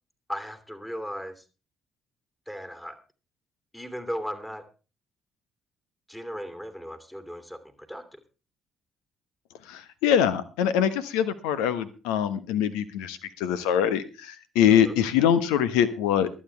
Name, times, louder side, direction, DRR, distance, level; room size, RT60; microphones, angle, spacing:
voice 1, 0.3-1.4 2.5-3.0 3.7-4.7 6.1-8.2 14.7-14.9, equal, 10° left, 9 dB, 2.7 m, -37 dB
voice 2, 9.7-16.3, left 9 dB, 65° left, 14 dB, 1.1 m, -24 dB
23.0 x 8.9 x 3.4 m, 0.33 s
figure-of-eight pair, 45°, 0 cm